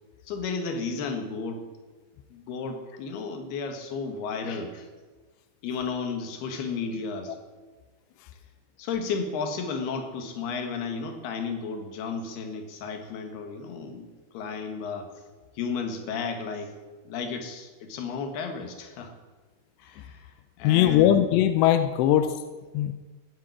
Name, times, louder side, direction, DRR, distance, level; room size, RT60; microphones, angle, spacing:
voice 1, 0.2-1.6 2.3-4.9 5.6-7.3 8.8-15.1 15.5-16.8 17.0-19.1 19.8-21.2, left 5 dB, 60° left, 5 dB, 3.4 m, -33 dB
voice 2, 20.6-22.3 22.7-22.9, left 11 dB, 80° left, 10 dB, 2.5 m, -20 dB
15.0 x 11.0 x 8.7 m, 1.3 s
omnidirectional pair, 5.8 m